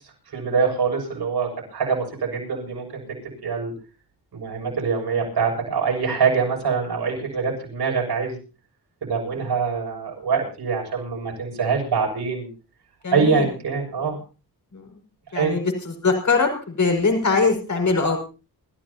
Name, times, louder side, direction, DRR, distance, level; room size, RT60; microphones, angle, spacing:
voice 1, 0.0-3.0 3.4-3.7 4.3-8.4 9.0-12.5 13.1-14.2 15.3-15.6, right 5 dB, 80° right, 0 dB, 7.1 m, -24 dB
voice 2, 13.0-13.4 14.7-15.0 15.3-18.2, left 4 dB, 45° left, 3 dB, 5.6 m, -22 dB
27.5 x 14.5 x 2.9 m, 0.35 s
wide cardioid pair, 95°, 39 cm